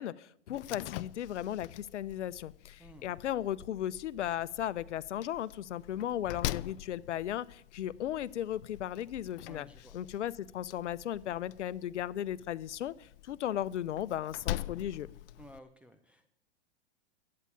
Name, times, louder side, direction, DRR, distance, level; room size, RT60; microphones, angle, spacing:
voice 1, 0.0-9.7 9.9-15.1, left 11 dB, 85° left, 19 dB, 0.8 m, -36 dB
Slam, 0.5-15.6, left 16 dB, 55° left, 0.5 m, -44 dB
voice 2, 2.8-3.2 9.5-10.0 15.4-16.3, equal, 5° right, 4 dB, 0.6 m, -54 dB
12.0 x 8.8 x 8.6 m, 0.71 s
hypercardioid pair, 130°, 35 cm